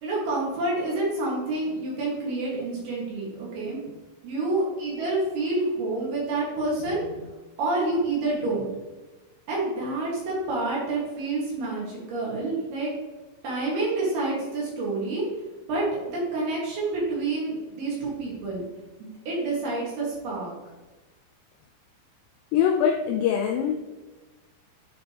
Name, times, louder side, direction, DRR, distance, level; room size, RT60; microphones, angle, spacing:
voice 1, 0.0-3.8 4.2-7.0 7.6-8.7 9.5-12.9 13.4-15.2 15.7-18.6 19.0-20.5, right 2 dB, 60° right, -5 dB, 3.5 m, -28 dB
voice 2, 22.5-23.8, left 8 dB, 85° left, 4 dB, 2.4 m, -23 dB
11.0 x 5.2 x 3.0 m, 1.2 s
omnidirectional pair, 5.5 m